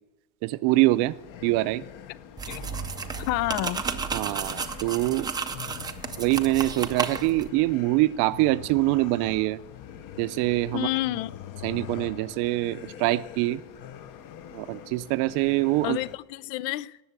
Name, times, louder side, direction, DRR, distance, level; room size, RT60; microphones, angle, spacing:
voice 1, 0.4-1.2 1.4-1.8 4.1-5.3 6.2-9.6 10.2-10.9 11.6-13.6 14.5-16.0, right 19 dB, 55° right, 0.6 m, -24 dB
sound 1, 0.7-16.2, left 10 dB, 40° left, 0.8 m, -43 dB
sound 2, 2.4-7.5, right 5 dB, 10° right, 0.4 m, -33 dB
voice 2, 2.5-2.8 3.2-3.8 10.7-11.3 15.8-17.0, left 17 dB, 85° left, 0.6 m, -29 dB
18.5 x 6.9 x 8.2 m
cardioid pair, 150°, 50 cm